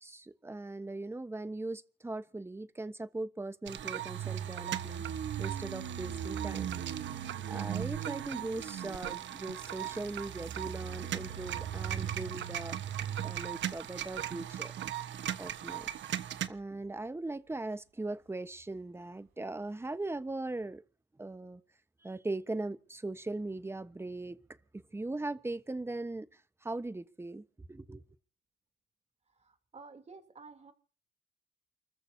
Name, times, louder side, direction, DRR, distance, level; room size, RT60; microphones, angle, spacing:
voice 1, 0.0-5.0 5.4-6.7 7.4-12.8 13.2-14.7 15.4-15.9 16.5-20.8 21.2-21.6 22.0-24.4 24.7-26.3 26.6-28.0, right 2 dB, 10° right, 1.1 m, -39 dB
sound 1, 3.7-16.5, right 10 dB, 70° right, 1.3 m, -37 dB
Thunder, 4.9-20.2, right 5 dB, 90° right, 4.5 m, -60 dB
voice 2, 29.4-30.7, right 4 dB, 35° right, 3.1 m, -52 dB
29.0 x 14.0 x 2.8 m
cardioid pair, 90°, 20 cm